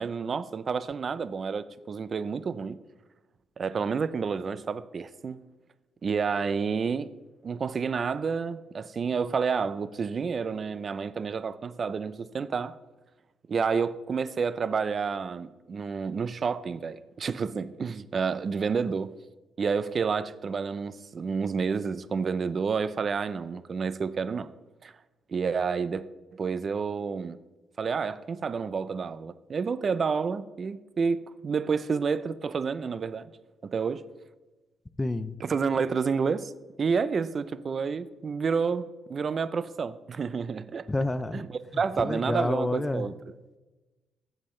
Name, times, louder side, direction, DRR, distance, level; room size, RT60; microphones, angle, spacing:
voice 1, 0.0-2.8 3.6-5.4 6.0-7.1 7.4-12.7 13.5-19.1 19.6-24.5 24.8-24.9 25.3-26.1 26.3-27.4 27.8-33.3 33.6-34.0 35.4-36.5 36.8-40.9 41.3-43.3, right 5 dB, 45° right, 0.5 m, -29 dB
voice 2, 35.0-35.3 40.9-41.4 42.0-43.0, left 2 dB, 15° left, 0.5 m, -28 dB
15.5 x 7.5 x 3.2 m
cardioid pair, 90°, 0 cm